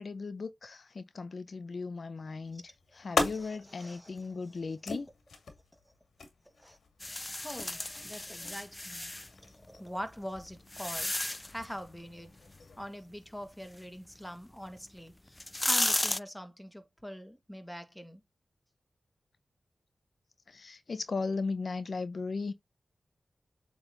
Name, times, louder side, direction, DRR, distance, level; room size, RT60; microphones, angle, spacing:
voice 1, 0.0-2.6 3.0-5.1 20.5-22.5, left 4 dB, 65° left, 0.6 m, -37 dB
sound 1, 2.4-12.9, left 4 dB, 90° left, 2.0 m, -41 dB
voice 2, 2.5-5.0 6.6-6.8 7.3-9.1 9.4-11.1 11.5-12.4 12.8-18.2, equal, 5° left, 1.8 m, -44 dB
sound 2, 7.0-9.3 10.1-11.7 14.7-14.8 15.3-16.2, left 1 dB, 20° left, 0.3 m, -33 dB
8.0 x 3.9 x 3.9 m
cardioid pair, 60°, 0 cm